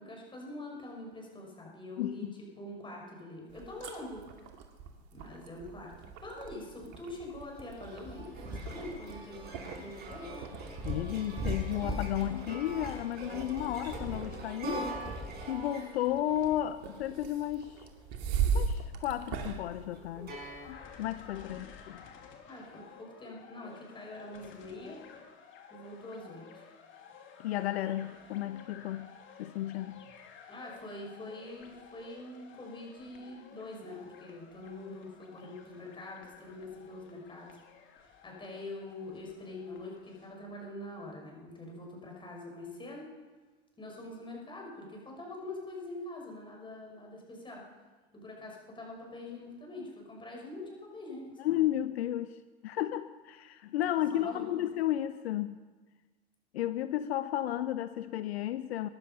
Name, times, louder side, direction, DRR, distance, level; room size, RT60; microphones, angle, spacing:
voice 1, 0.0-2.3 2.6-4.2 5.1-5.9 6.2-10.4 21.5-21.6 22.5-25.0 25.7-26.6 30.5-37.6 38.2-43.1 43.8-47.6 48.1-51.6 54.1-54.6, left 2 dB, 15° left, -1 dB, 5.9 m, -44 dB
voice 2, 2.0-2.4 10.8-15.0 15.5-17.9 18.5-20.4 20.7-22.0 27.4-29.1 29.4-30.0 51.4-55.6 56.5-58.9, left 12 dB, 70° left, 12 dB, 0.8 m, -33 dB
sound 1, 3.5-20.7, right 6 dB, 50° right, 2.6 m, -40 dB
sound 2, 7.4-21.1, right 1 dB, 30° right, 5.5 m, -41 dB
sound 3, 20.6-40.3, left 7 dB, 35° left, 2.8 m, -54 dB
23.0 x 11.0 x 5.6 m, 1.3 s
hypercardioid pair, 105°, 33 cm